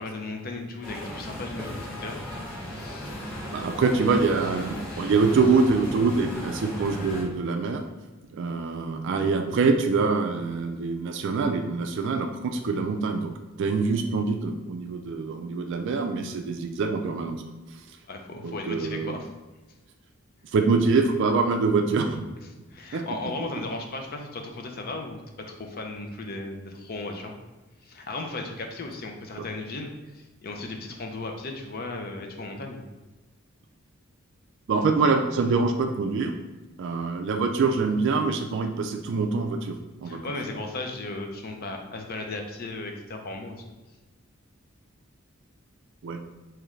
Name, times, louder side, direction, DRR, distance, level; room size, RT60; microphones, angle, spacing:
voice 1, 0.0-2.2 2.7-3.1 18.1-19.3 22.7-27.3 27.8-29.9 30.1-32.8 40.0-43.6, left 2 dB, 45° left, 3 dB, 0.5 m, -36 dB
sound 1, 0.8-7.2, left 1 dB, 80° left, 1.4 m, -36 dB
voice 2, 3.5-7.8 8.3-13.3 13.6-17.4 18.4-19.2 20.5-22.2 22.9-23.0 34.7-36.4 36.8-40.2 46.0-46.2, right 4 dB, 60° right, 4 dB, 0.3 m, -25 dB
3.6 x 3.1 x 3.1 m, 1.2 s
head